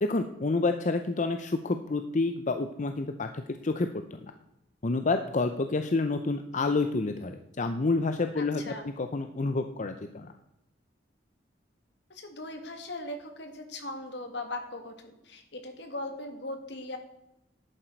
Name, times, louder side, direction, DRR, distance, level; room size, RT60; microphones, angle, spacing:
voice 1, 0.0-4.2 4.8-10.3, left 3 dB, 45° left, 8 dB, 0.6 m, -29 dB
voice 2, 8.4-8.9 12.1-17.0, left 2 dB, 70° left, 6 dB, 1.9 m, -39 dB
11.0 x 9.0 x 4.5 m, 0.88 s
head